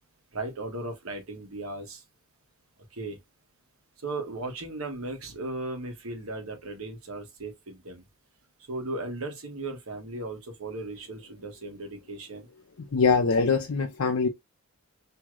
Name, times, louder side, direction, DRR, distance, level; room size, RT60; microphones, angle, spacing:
voice 1, 0.3-2.0 2.9-3.2 4.0-8.0 8.7-12.5, right 2 dB, 75° right, 1.1 m, -36 dB
voice 2, 12.9-14.3, left 4 dB, 70° left, 0.5 m, -23 dB
3.0 x 2.8 x 2.3 m
head